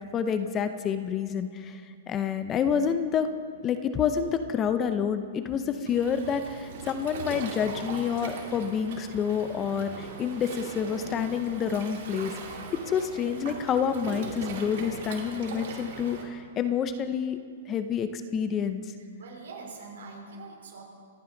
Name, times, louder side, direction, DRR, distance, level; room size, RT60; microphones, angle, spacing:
voice 1, 0.1-1.8 2.1-3.3 3.6-12.3 12.9-17.4 17.7-18.8, left 7 dB, 20° left, 10 dB, 0.6 m, -28 dB
Waves surf, 5.9-16.2, right 5 dB, 60° right, 2.4 m, -40 dB
voice 2, 19.0-20.8, right 3 dB, 75° right, 0 dB, 3.9 m, -44 dB
26.5 x 9.3 x 3.9 m, 2.2 s
hypercardioid pair, 145°, 0 cm